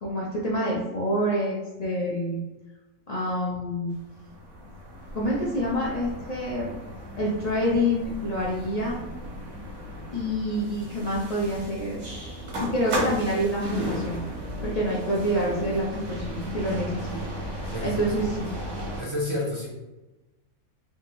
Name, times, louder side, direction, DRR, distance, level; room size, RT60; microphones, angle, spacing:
voice 1, 0.0-2.4 3.1-3.9 5.1-6.8 7.2-9.0 10.1-12.0 12.6-14.2 14.6-17.2 17.5-18.5, equal, 60° left, -5 dB, 0.4 m, -27 dB
sound 1, 3.9-19.0, equal, 80° right, 1.4 m, -35 dB
voice 2, 19.0-19.7, left 1 dB, 50° right, -5 dB, 0.3 m, -29 dB
3.5 x 2.5 x 2.9 m, 1.0 s
omnidirectional pair, 1.6 m